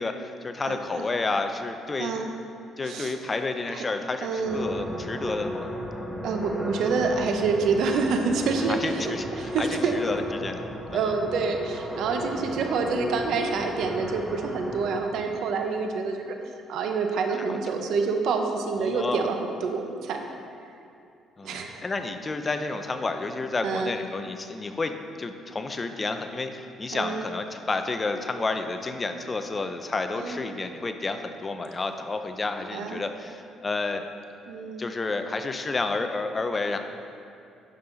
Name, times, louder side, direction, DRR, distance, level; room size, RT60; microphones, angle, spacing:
voice 1, 0.0-2.2 2.8-5.7 8.7-10.6 10.9-11.1 17.5-17.8 18.8-19.3 21.4-34.1 34.8-36.8, left 3 dB, 25° left, 7 dB, 0.6 m, -30 dB
voice 2, 0.6-1.1 2.0-2.3 2.8-3.1 3.7-3.8 4.2-4.8 6.2-10.0 10.9-16.4 16.7-20.2 21.4-21.8 23.6-23.9 26.9-27.3 30.2-30.4 32.7-33.0 34.5-34.8, right 4 dB, 75° right, 4 dB, 0.8 m, -27 dB
sound 1, 4.4-15.0, equal, ahead, 1.0 m, -35 dB
10.5 x 5.6 x 3.9 m, 2.6 s
cardioid pair, 100°, 0 cm